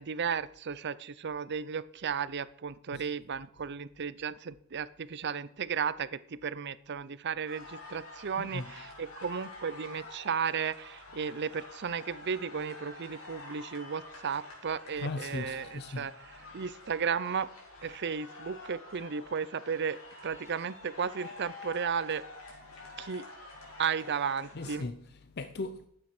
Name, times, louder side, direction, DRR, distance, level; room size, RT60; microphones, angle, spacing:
voice 1, 0.0-16.1 16.5-17.5 17.8-22.2 23.0-23.3 23.8-24.8, right 6 dB, 55° right, 0.6 m, -34 dB
sound 1, 7.5-24.8, left 2 dB, 80° left, 4.8 m, -48 dB
voice 2, 8.4-8.7 15.0-16.1 16.5-16.6 22.7-23.0 23.7-23.8 24.5-25.9, left 2 dB, 50° left, 0.6 m, -39 dB
11.5 x 9.1 x 6.0 m
head